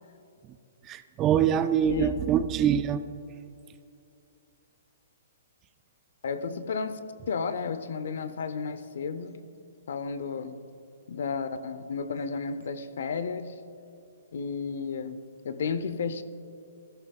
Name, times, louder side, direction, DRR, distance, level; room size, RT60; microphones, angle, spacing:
voice 1, 0.9-3.0, right 9 dB, 20° right, 11 dB, 0.4 m, -24 dB
voice 2, 6.2-7.0 7.3-9.4 9.9-10.6 11.1-13.6 14.3-15.2 15.4-16.2, left 5 dB, 70° left, 12 dB, 0.7 m, -32 dB
15.0 x 13.5 x 2.4 m, 2.6 s
hypercardioid pair, 155°, 0 cm